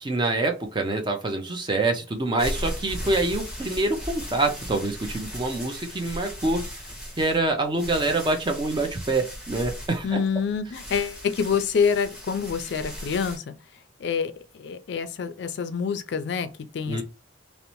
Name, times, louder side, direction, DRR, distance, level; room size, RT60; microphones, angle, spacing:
voice 1, 0.0-6.6 7.2-10.2 16.9-17.0, right 2 dB, 25° right, 0.5 m, -26 dB
sound 1, 2.2-13.4, equal, 5° right, 0.9 m, -37 dB
voice 2, 10.0-13.5 14.0-17.0, left 6 dB, 60° left, 0.3 m, -27 dB
2.7 x 2.0 x 2.9 m
head